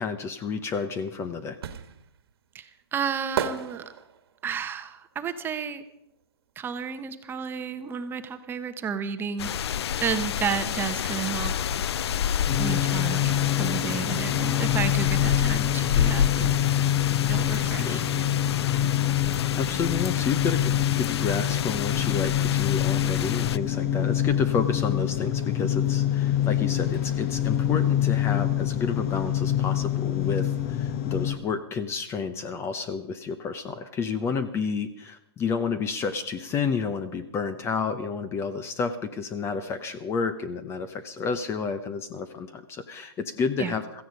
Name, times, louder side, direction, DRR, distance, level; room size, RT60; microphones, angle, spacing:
voice 1, 0.0-1.6 17.8-18.1 19.4-44.0, left 5 dB, 20° left, 12 dB, 0.8 m, -30 dB
sound 1, 0.7-6.6 6.9-8.5 8.7-8.8, right 8 dB, 65° right, 1.6 m, -36 dB
voice 2, 2.5-3.8 4.4-5.8 6.6-11.8 12.5-16.6 17.3-18.0 43.6-43.7, right 7 dB, 15° right, 8 dB, 1.0 m, -32 dB
sound 2, 9.4-23.6, left 9 dB, 75° left, 0.5 m, -29 dB
sound 3, 12.5-31.3, left 11 dB, 40° left, 1.5 m, -26 dB
16.5 x 14.5 x 5.2 m, 0.80 s
hypercardioid pair, 145°, 14 cm